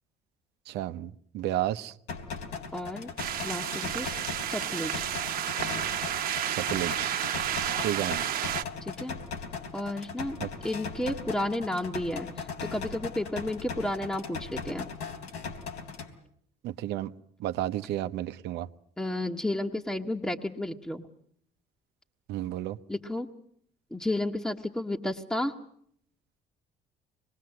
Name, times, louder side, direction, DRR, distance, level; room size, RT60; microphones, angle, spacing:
voice 1, 0.7-1.9 6.4-7.1 7.8-8.2 10.4-10.5 16.6-17.1 17.4-18.7 22.3-22.8, right 13 dB, 85° right, 11 dB, 0.9 m, -32 dB
sound 1, 2.1-16.1, left 5 dB, 90° left, 3.6 m, -39 dB
voice 2, 2.7-3.1 3.4-5.0 8.8-9.2 9.7-10.4 10.6-14.9 19.0-21.1 22.9-23.3 23.9-25.5, left 1 dB, 5° left, 2 dB, 1.3 m, -32 dB
sound 2, 3.2-8.6, right 10 dB, 60° right, 1.3 m, -31 dB
26.0 x 21.0 x 7.7 m, 0.66 s
cardioid pair, 110°, 17 cm